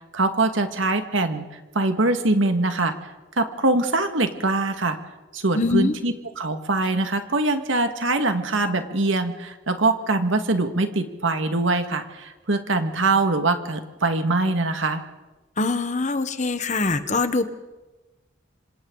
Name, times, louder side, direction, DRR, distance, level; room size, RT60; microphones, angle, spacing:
voice 1, 0.1-1.5 1.7-3.1 3.4-5.0 5.3-15.0, right 2 dB, 85° right, 7 dB, 2.0 m, -23 dB
voice 2, 5.5-6.0 15.6-17.5, left 3 dB, 40° left, 10 dB, 1.2 m, -23 dB
26.5 x 26.0 x 4.0 m, 1.1 s
head